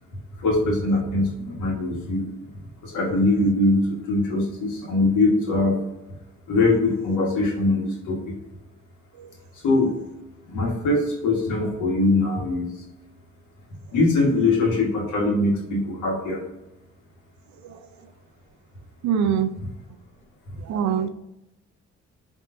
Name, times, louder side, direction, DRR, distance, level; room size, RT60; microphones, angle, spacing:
voice 1, 0.4-2.3 2.8-5.8 6.5-8.3 9.6-9.9 10.5-12.7 13.9-16.4, left 2 dB, 80° left, -1 dB, 1.6 m, -22 dB
voice 2, 19.0-19.6 20.6-21.1, right 8 dB, 70° right, 9 dB, 0.5 m, -24 dB
5.5 x 3.5 x 2.6 m, 0.94 s
cardioid pair, 90°, 30 cm